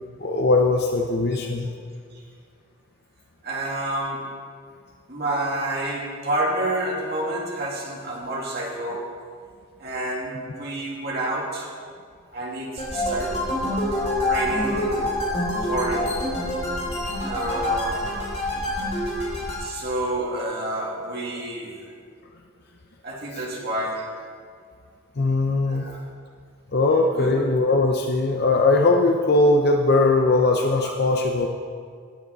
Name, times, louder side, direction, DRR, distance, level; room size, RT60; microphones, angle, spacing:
voice 1, 0.2-1.7 23.3-23.4 25.2-25.9 26.7-31.5, left 2 dB, 50° left, 2 dB, 0.6 m, -20 dB
voice 2, 3.4-4.4 5.1-9.1 9.8-11.7 12.3-13.4 14.2-15.1 15.6-16.3 17.2-18.1 19.6-21.9 23.0-24.3 25.7-26.0 27.1-27.4, right 1 dB, 50° right, -4 dB, 2.5 m, -29 dB
sound 1, 12.8-19.6, left 1 dB, 30° left, 2.8 m, -26 dB
16.5 x 9.5 x 4.1 m, 2.1 s
head